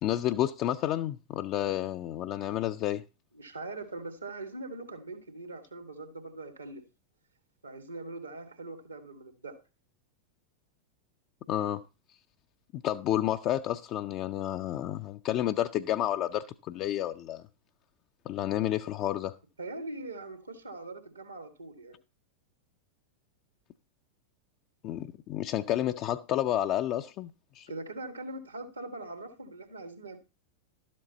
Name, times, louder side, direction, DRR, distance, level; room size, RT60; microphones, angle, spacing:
voice 1, 0.0-3.0 11.5-11.8 12.7-17.4 18.3-19.4 24.8-27.7, left 12 dB, 40° left, 0.4 m, -30 dB
voice 2, 3.3-6.8 7.6-9.6 19.6-22.0 27.7-30.2, right 2 dB, 80° right, 1.7 m, -41 dB
12.0 x 7.4 x 4.0 m
figure-of-eight pair, 90°, 0 cm